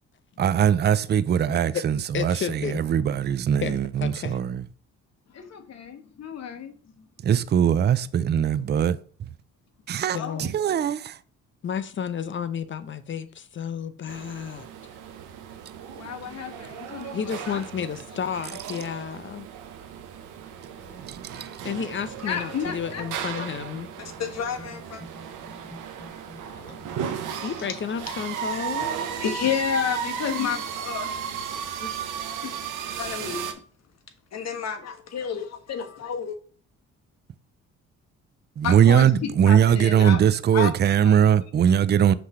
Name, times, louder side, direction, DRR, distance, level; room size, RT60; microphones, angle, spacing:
voice 1, 0.4-4.6 7.2-9.0 9.9-11.2 21.1-21.5 38.6-42.1, right 9 dB, 35° right, 0.4 m, -21 dB
voice 2, 1.5-1.8 2.1-2.8 3.6-4.4 10.1-10.5 11.6-14.7 17.1-19.5 21.6-23.9 27.4-28.9, left 7 dB, 40° left, 0.7 m, -32 dB
voice 3, 5.3-7.1 10.1-10.5 15.9-17.2 17.4-17.6 18.8-18.9 20.8-21.2 22.2-23.0 24.0-25.0 26.5-27.8 29.1-32.0 33.0-33.6 34.3-36.4 38.6-40.2 40.5-40.7 41.0-41.1, left 7 dB, 60° left, 1.3 m, -32 dB
sound 1, 14.1-33.5, right 7 dB, 85° right, 0.9 m, -35 dB
sound 2, 22.0-27.0, equal, 10° left, 1.4 m, -48 dB
6.0 x 3.2 x 5.6 m
cardioid pair, 90°, 30 cm